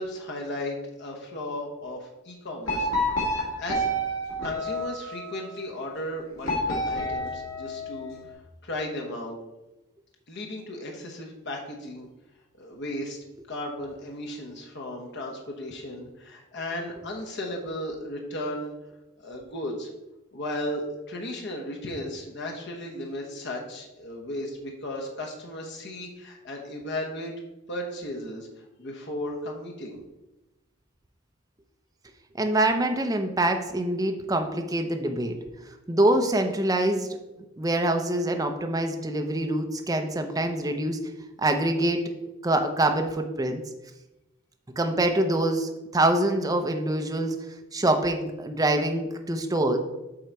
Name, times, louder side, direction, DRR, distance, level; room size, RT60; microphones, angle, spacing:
voice 1, 0.0-2.9 3.3-3.9 4.4-8.2 8.6-9.4 10.3-12.1 12.6-13.2 13.5-18.7 19.2-19.9 20.3-27.3 27.7-28.5 28.8-30.0, left 1 dB, 60° left, 0 dB, 1.1 m, -35 dB
sound 1, 2.7-5.3 6.4-8.2, equal, 75° left, 2.4 m, -29 dB
voice 2, 32.3-35.3 35.9-37.1 37.6-41.0 41.4-42.0 42.4-43.6 44.8-47.3 47.7-49.8, right 1 dB, 20° right, 4 dB, 0.7 m, -25 dB
7.7 x 4.0 x 4.6 m, 0.99 s
head